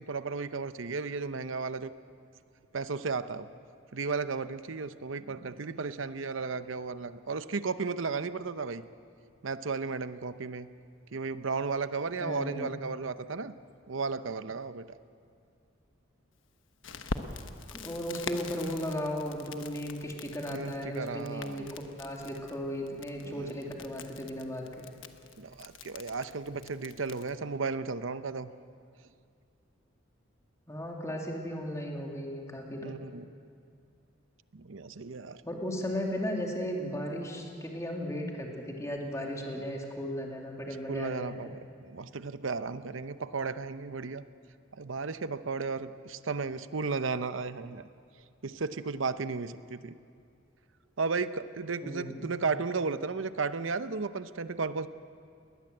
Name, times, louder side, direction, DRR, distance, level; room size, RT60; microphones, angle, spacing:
voice 1, 0.0-1.9 2.7-3.5 3.9-8.8 9.4-10.7 11.1-13.5 13.9-14.9 20.5-21.7 23.2-23.5 25.4-28.5 32.8-33.2 34.5-35.4 39.6-39.8 40.7-41.6 41.9-44.2 44.7-47.9 48.4-49.9 51.0-54.9, right 4 dB, 80° right, 12 dB, 0.8 m, -34 dB
voice 2, 12.2-12.7 17.7-24.9 26.5-26.6 30.7-32.9 35.4-41.5 51.8-52.2, equal, 15° left, 0 dB, 2.6 m, -36 dB
Crackle, 16.8-27.4, left 3 dB, 75° left, 1.2 m, -44 dB
21.0 x 19.5 x 7.9 m, 2.4 s
head